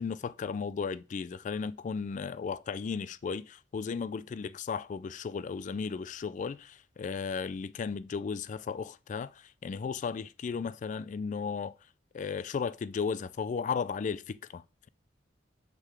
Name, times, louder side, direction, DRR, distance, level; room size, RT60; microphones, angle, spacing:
voice 1, 0.0-11.7 12.1-14.9, left 5 dB, 40° left, 0.3 m, -35 dB
5.9 x 3.9 x 5.7 m
head